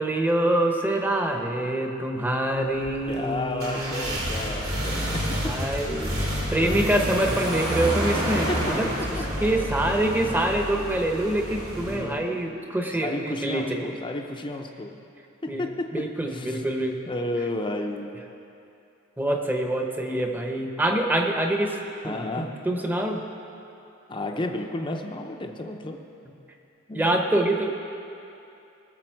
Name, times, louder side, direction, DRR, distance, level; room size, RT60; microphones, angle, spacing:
voice 1, 0.0-4.1 4.7-4.8 5.4-6.2 6.5-8.9 9.4-13.9 15.5-15.6 15.9-17.0 19.2-21.8 22.0-23.2 26.9-27.7, right 1 dB, 10° right, 3 dB, 0.9 m, -25 dB
sound 1, 2.7-12.0, equal, 80° right, 2.9 m, -29 dB
voice 2, 3.1-5.7 6.6-6.9 8.5-8.7 9.0-9.3 11.7-12.4 12.9-15.0 15.4-16.6 17.1-18.2 22.0-22.6 24.1-26.0 26.9-27.2, left 1 dB, 25° left, 3 dB, 0.6 m, -32 dB
18.5 x 6.8 x 4.6 m, 2.7 s
head